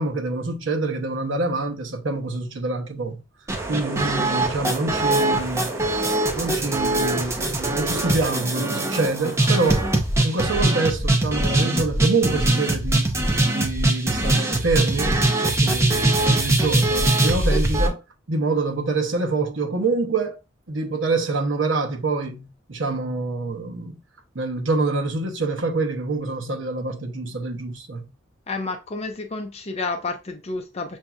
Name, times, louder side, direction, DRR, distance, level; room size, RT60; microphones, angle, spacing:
voice 1, 0.0-3.2 3.7-5.8 6.3-9.9 10.2-13.2 13.5-18.0 18.3-20.4 20.7-24.0 24.3-28.1, right 3 dB, 75° right, 0.9 m, -26 dB
sound 1, 3.5-17.9, right 2 dB, 15° right, 0.6 m, -22 dB
voice 2, 28.5-31.0, left 3 dB, 35° left, 0.5 m, -30 dB
6.9 x 2.7 x 2.3 m
head